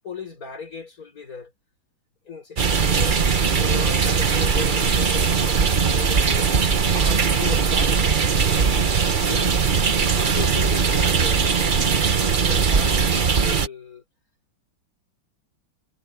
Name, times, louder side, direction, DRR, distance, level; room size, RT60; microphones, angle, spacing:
voice 1, 0.0-1.5 2.2-8.7 9.2-9.6 10.1-11.7 12.2-14.0, left 5 dB, 40° left, 6.4 m, -37 dB
sound 1, 2.6-13.7, right 5 dB, 45° right, 0.6 m, -20 dB
omnidirectional pair, 2.3 m